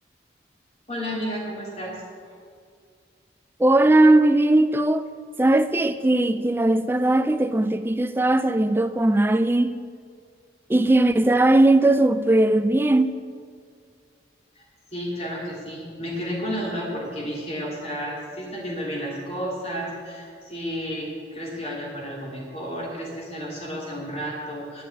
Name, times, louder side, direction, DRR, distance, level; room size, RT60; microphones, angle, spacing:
voice 1, 0.9-2.0 14.5-14.6 14.9-24.8, equal, 35° left, 3.2 m, -32 dB
voice 2, 3.6-5.1 5.4-9.8 10.7-13.1, right 2 dB, 10° right, 0.3 m, -19 dB
11.5 x 7.3 x 8.6 m
head